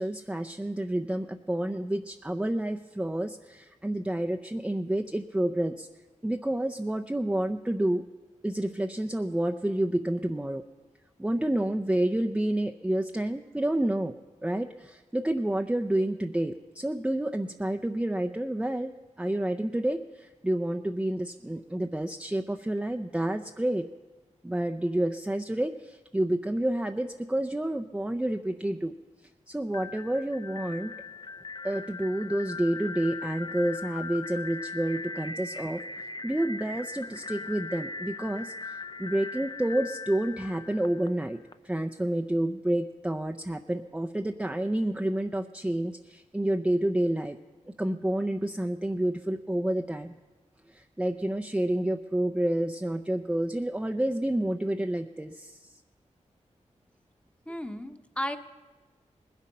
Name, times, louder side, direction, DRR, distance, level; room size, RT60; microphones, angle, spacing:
voice 1, 0.0-5.9 6.2-8.0 8.4-10.6 11.2-14.1 14.4-18.9 19.2-23.9 24.4-28.9 29.5-30.9 31.6-47.4 47.8-50.1 50.7-55.8, right 1 dB, 10° right, 6 dB, 0.6 m, -29 dB
sound 1, 29.7-41.5, left 4 dB, 35° left, 0.7 m, -40 dB
voice 2, 57.5-58.4, equal, 10° left, 8 dB, 1.0 m, -34 dB
19.5 x 8.4 x 5.5 m, 1.3 s
cardioid pair, 50°, 13 cm